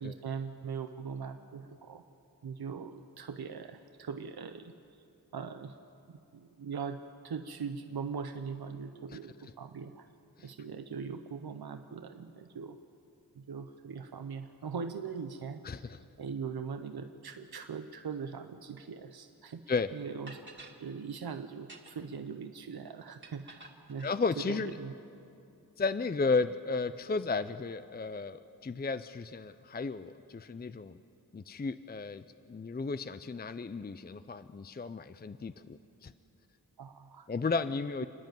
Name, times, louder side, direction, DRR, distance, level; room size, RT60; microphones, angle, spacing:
voice 1, 0.0-2.0 2.4-4.7 5.3-5.8 6.1-10.1 10.4-12.8 13.4-19.6 19.9-20.4 20.8-25.0 36.8-37.3, right 6 dB, 85° right, 8 dB, 0.7 m, -41 dB
voice 2, 15.6-16.0 19.7-19.9 24.0-24.8 25.8-31.0 31.3-36.1 37.3-38.1, left 4 dB, 25° left, 12 dB, 0.5 m, -34 dB
sound 1, 19.8-19.9 20.3-20.8 21.6-22.1 23.2-24.2, right 2 dB, 30° right, 2.2 m, -51 dB
29.0 x 10.5 x 9.1 m, 2.7 s
wide cardioid pair, 65°, 37 cm